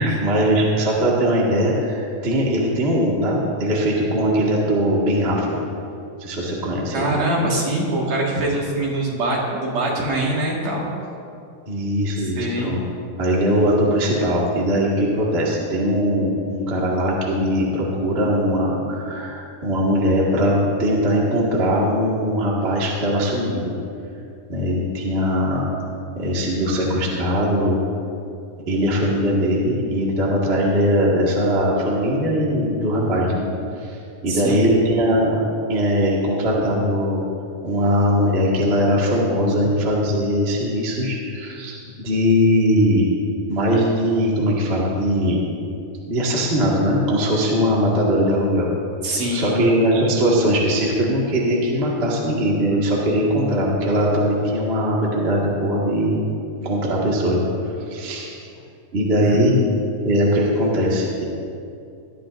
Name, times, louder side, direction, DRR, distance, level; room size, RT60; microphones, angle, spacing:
voice 1, 0.0-5.6 6.2-7.1 11.7-12.8 13.2-23.7 24.5-25.6 26.2-27.8 28.7-33.5 33.8-34.0 34.2-35.4 35.7-37.2 37.6-43.1 43.5-45.4 46.0-48.7 49.3-56.2 56.6-57.5 57.9-58.4 58.9-59.6 60.0-61.2, equal, 30° right, -4 dB, 1.1 m, -20 dB
voice 2, 6.9-10.9 12.2-12.7 34.3-34.8 49.0-49.7 59.2-59.8, right 1 dB, 55° right, -3 dB, 2.8 m, -24 dB
19.5 x 12.5 x 2.6 m, 2.5 s
omnidirectional pair, 4.1 m